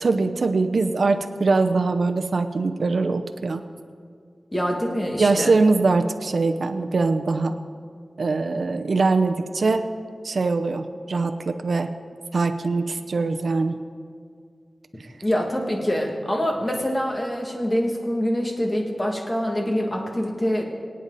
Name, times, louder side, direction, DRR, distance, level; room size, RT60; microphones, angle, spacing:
voice 1, 0.0-3.6 5.2-7.5 8.2-9.8 10.2-11.9 12.3-13.8, right 3 dB, 70° right, 7 dB, 0.7 m, -22 dB
voice 2, 4.5-5.6 15.2-20.6, equal, 20° left, 1 dB, 2.3 m, -25 dB
24.0 x 8.9 x 4.1 m, 2.2 s
wide cardioid pair, 105°, 0 cm